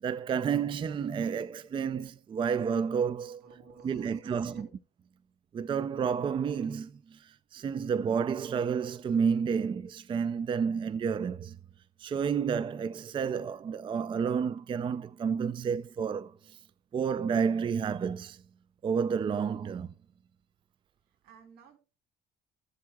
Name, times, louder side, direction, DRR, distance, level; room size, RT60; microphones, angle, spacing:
voice 1, 0.0-3.4 3.8-4.5 5.5-11.6 12.0-16.6 16.9-18.4 18.8-19.9, right 6 dB, 30° right, 0.4 m, -30 dB
voice 2, 3.4-4.6 21.1-21.8, right 6 dB, 85° right, 3.1 m, -51 dB
15.5 x 7.7 x 2.2 m
cardioid pair, 110°, 17 cm